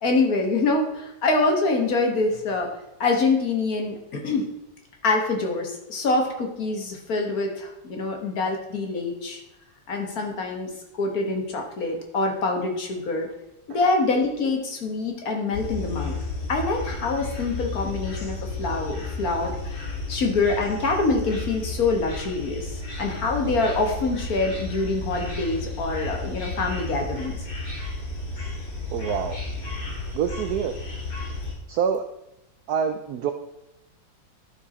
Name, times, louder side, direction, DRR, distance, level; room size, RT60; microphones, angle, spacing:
voice 1, 0.0-2.7 3.0-4.4 5.0-9.4 9.9-10.7 11.0-13.3 13.7-16.2 16.5-22.7 23.0-27.4, left 3 dB, 50° left, 2 dB, 1.6 m, -25 dB
sound 1, 15.5-31.5, left 3 dB, 70° left, 3.7 m, -33 dB
voice 2, 28.9-29.4 30.1-30.7 31.7-32.0 32.7-33.3, right 7 dB, 75° right, 7 dB, 0.9 m, -26 dB
11.5 x 4.6 x 4.2 m, 0.91 s
omnidirectional pair, 2.1 m